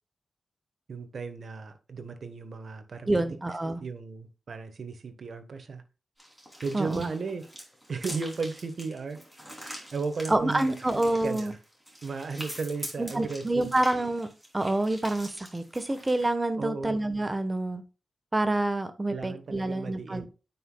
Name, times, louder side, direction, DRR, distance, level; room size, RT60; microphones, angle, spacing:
voice 1, 0.9-3.4 3.8-5.8 6.6-7.4 7.9-9.2 9.9-10.7 11.2-11.6 12.0-13.7 16.6-17.0 19.1-20.3, right 4 dB, 65° right, 1.3 m, -35 dB
voice 2, 3.1-3.8 6.7-7.1 10.3-11.5 13.0-14.3 14.5-17.8 18.3-20.3, right 2 dB, 20° right, 1.2 m, -27 dB
sound 1, 6.2-16.3, equal, 5° right, 3.2 m, -44 dB
9.2 x 5.8 x 2.3 m
cardioid pair, 65°, 0 cm